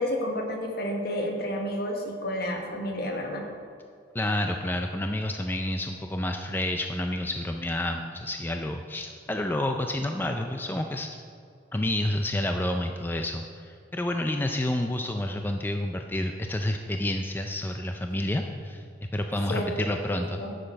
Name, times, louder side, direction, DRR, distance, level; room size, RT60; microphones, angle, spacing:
voice 1, 0.0-3.4 19.5-20.5, equal, 60° left, 2 dB, 1.4 m, -31 dB
voice 2, 4.1-11.1 11.7-18.8 19.1-20.4, left 1 dB, 10° left, 4 dB, 0.4 m, -29 dB
10.5 x 7.6 x 4.5 m, 2.4 s
head